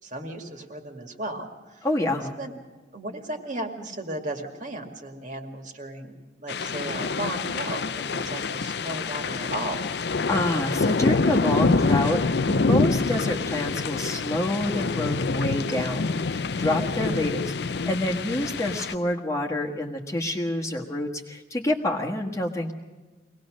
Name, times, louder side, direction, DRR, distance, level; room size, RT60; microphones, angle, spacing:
voice 1, 0.0-1.9 2.4-2.5 2.9-9.8, right 1 dB, 40° right, 3 dB, 2.2 m, -35 dB
voice 2, 1.8-2.3 10.3-22.7, left 1 dB, 15° left, 0 dB, 1.5 m, -27 dB
sound 1, 6.5-18.9, left 4 dB, 60° left, 0.5 m, -26 dB
23.5 x 18.5 x 6.4 m, 1.3 s
head